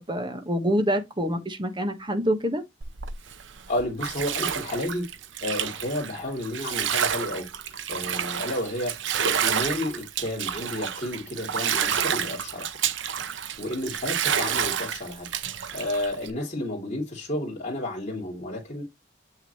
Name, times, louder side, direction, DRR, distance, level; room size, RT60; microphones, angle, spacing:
voice 1, 0.0-2.6, equal, 25° right, 1.3 m, -26 dB
Bathtub (filling or washing), 2.8-16.3, right 8 dB, 80° right, 0.7 m, -29 dB
voice 2, 3.7-5.1 5.4-8.9 9.2-12.7 13.6-18.8, left 1 dB, 40° left, 3.0 m, -31 dB
7.5 x 6.3 x 3.0 m
head